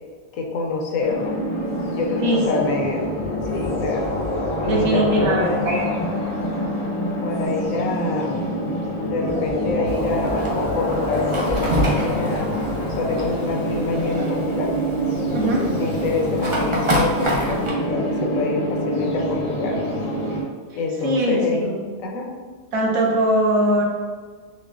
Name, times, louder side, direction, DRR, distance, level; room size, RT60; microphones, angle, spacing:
voice 1, 0.3-1.4 1.9-3.1 3.4-4.1 4.6-5.6 7.2-8.4 9.0-12.6 12.9-14.7 15.3-19.9 20.7-21.7 22.0-22.4, left 3 dB, 75° left, 1 dB, 1.0 m, -26 dB
sound 1, 1.0-20.4, equal, 35° left, 0.7 m, -26 dB
voice 2, 4.7-5.9 15.3-15.6 20.7-21.8 22.7-23.8, right 1 dB, 80° right, -1 dB, 1.2 m, -21 dB
Fire, 9.9-17.7, equal, 45° right, 0.4 m, -28 dB
6.0 x 2.1 x 2.4 m, 1.5 s
omnidirectional pair, 1.5 m